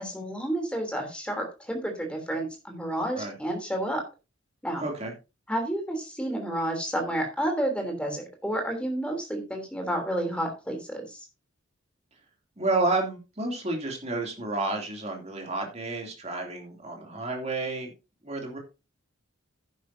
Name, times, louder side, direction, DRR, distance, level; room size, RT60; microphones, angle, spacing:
voice 1, 0.0-4.0 4.6-4.8 5.5-11.2, right 1 dB, 5° left, 3 dB, 3.2 m, -30 dB
voice 2, 4.8-5.1 12.6-17.9 18.2-18.6, right 2 dB, 30° right, 1 dB, 2.9 m, -30 dB
11.0 x 10.5 x 2.7 m, 0.28 s
head